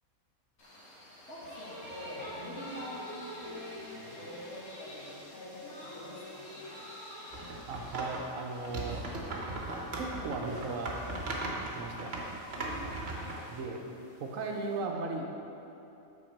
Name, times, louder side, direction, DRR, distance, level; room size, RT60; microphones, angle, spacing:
sound 1, 0.6-14.8, left 1 dB, 85° left, 2.3 m, -48 dB
voice 1, 1.3-3.1 3.4-6.6 12.6-12.9 14.5-14.6, left 1 dB, 55° left, -6 dB, 2.0 m, -45 dB
sound 2, 7.3-8.3 8.6-13.4, right 2 dB, 50° right, 1.2 m, -38 dB
voice 2, 7.7-9.0 10.0-11.0 11.7-12.1 13.5-13.8 14.2-15.3, right 3 dB, 70° right, 1 dB, 1.2 m, -36 dB
8.9 x 4.3 x 6.5 m, 2.8 s
omnidirectional pair, 1.5 m